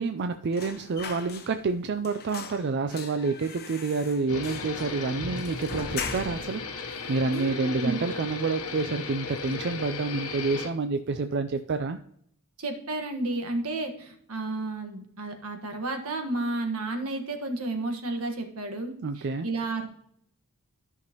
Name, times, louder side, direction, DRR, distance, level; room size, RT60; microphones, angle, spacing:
voice 1, 0.0-12.0 19.0-19.5, right 4 dB, 50° right, 8 dB, 0.4 m, -28 dB
sound 1, 0.5-1.8 2.0-6.6 6.9-7.0 7.3-8.1 8.5-8.7 9.0-9.7 10.0-10.2, left 6 dB, 45° left, 1.1 m, -41 dB
sound 2, 4.3-10.7, left 4 dB, 85° left, 1.0 m, -36 dB
voice 2, 7.3-8.0 12.6-19.9, right 2 dB, 80° right, 5 dB, 1.5 m, -32 dB
13.5 x 5.8 x 2.9 m, 0.70 s
head